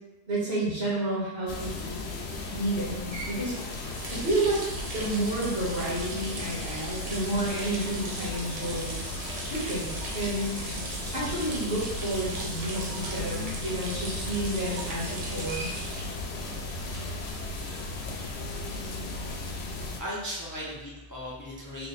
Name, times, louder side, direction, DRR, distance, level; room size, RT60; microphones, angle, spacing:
voice 1, 0.3-1.8 2.5-3.6 4.1-4.6 4.9-9.0 9.5-10.6 11.1-15.7, right 1 dB, 70° right, -7 dB, 1.6 m, -30 dB
sound 1, 1.5-20.0, left 2 dB, 90° left, 0.8 m, -36 dB
sound 2, 2.9-19.8, right 3 dB, 50° right, 0.5 m, -40 dB
voice 2, 19.6-21.9, equal, 25° left, -6 dB, 0.5 m, -37 dB
3.4 x 2.1 x 3.9 m, 1.0 s
omnidirectional pair, 1.0 m